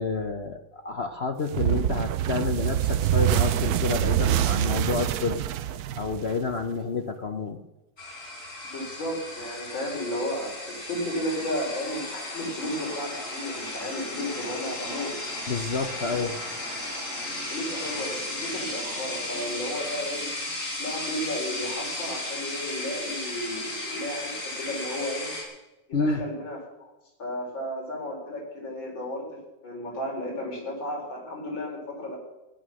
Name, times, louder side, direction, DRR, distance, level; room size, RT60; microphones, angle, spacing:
voice 1, 0.0-5.4 6.0-7.6 15.5-16.3 25.9-26.2, left 4 dB, 55° left, 7 dB, 0.7 m, -29 dB
sound 1, 1.5-6.7, right 12 dB, 65° right, 1.0 m, -25 dB
sound 2, 8.0-25.4, left 1 dB, 40° left, 4.3 m, -35 dB
voice 2, 8.7-15.2 16.0-16.2 17.5-20.3 20.8-25.3 25.9-26.6 27.2-32.2, left 1 dB, 80° left, -1 dB, 4.9 m, -33 dB
17.0 x 11.0 x 6.3 m, 1.0 s
omnidirectional pair, 2.1 m